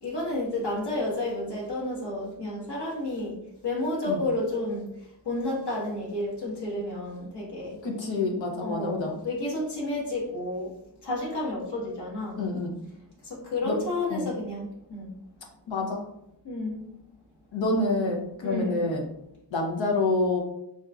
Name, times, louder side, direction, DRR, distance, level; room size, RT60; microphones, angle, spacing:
voice 1, 0.0-3.3 3.6-4.9 5.2-7.7 8.6-10.7 11.0-12.4 13.3-15.1 16.4-16.8 18.4-18.8, left 2 dB, 65° left, -5 dB, 1.4 m, -31 dB
voice 2, 7.8-9.1 12.4-12.7 13.6-13.8 14.1-14.3 15.7-16.1 17.5-19.1 19.5-20.4, left 2 dB, 85° left, 1 dB, 0.8 m, -27 dB
4.3 x 2.5 x 2.3 m, 0.80 s
wide cardioid pair, 125°, 44 cm